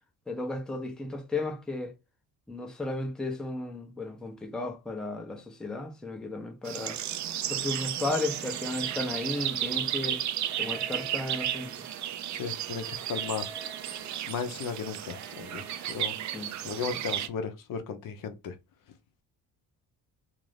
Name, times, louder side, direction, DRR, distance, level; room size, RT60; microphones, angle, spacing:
voice 1, 0.3-1.9 2.5-7.0 7.5-10.2 10.6-11.7 16.3-16.5, left 2 dB, ahead, 0.5 m, -34 dB
sound 1, 6.7-17.3, right 11 dB, 50° right, 0.4 m, -34 dB
sound 2, 8.1-9.4 10.4-12.1 12.9-14.2 15.0-15.9, right 3 dB, 30° right, 0.8 m, -48 dB
voice 2, 12.3-13.5 14.3-16.1 16.6-18.6, left 6 dB, 55° left, 0.6 m, -35 dB
2.5 x 2.5 x 3.2 m
cardioid pair, 95°, 39 cm